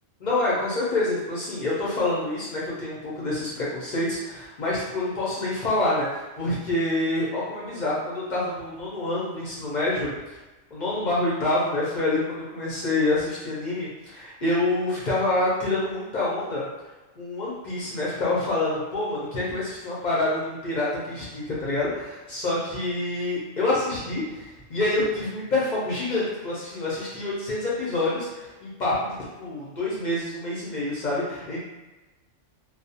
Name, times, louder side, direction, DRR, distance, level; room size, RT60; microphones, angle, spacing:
voice 1, 0.2-10.4 10.7-16.6 17.2-31.7, left 2 dB, 50° left, -7 dB, 0.6 m, -27 dB
2.3 x 2.0 x 2.7 m, 1.1 s
omnidirectional pair, 1.3 m